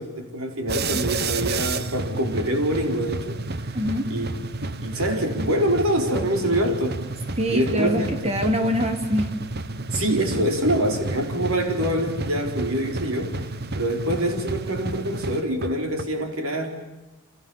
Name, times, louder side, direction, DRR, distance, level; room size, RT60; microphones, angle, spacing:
voice 1, 0.0-3.7 4.1-4.3 4.6-7.0 7.5-8.3 9.9-13.4 13.7-16.7, right 1 dB, 85° right, 4.5 m, -25 dB
sound 1, 0.7-16.0, right 3 dB, 50° right, 1.1 m, -31 dB
voice 2, 3.7-4.1 7.4-9.3, equal, 30° right, 3.5 m, -24 dB
29.5 x 27.5 x 7.3 m
head